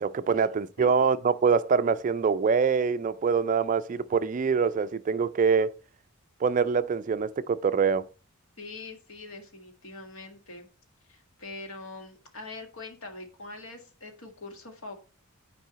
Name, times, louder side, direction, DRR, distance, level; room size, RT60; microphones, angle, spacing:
voice 1, 0.0-5.7 6.4-8.1, right 5 dB, 35° right, 0.3 m, -24 dB
voice 2, 8.6-10.7 11.1-14.9, left 3 dB, 65° left, 1.7 m, -43 dB
9.0 x 4.7 x 3.9 m
head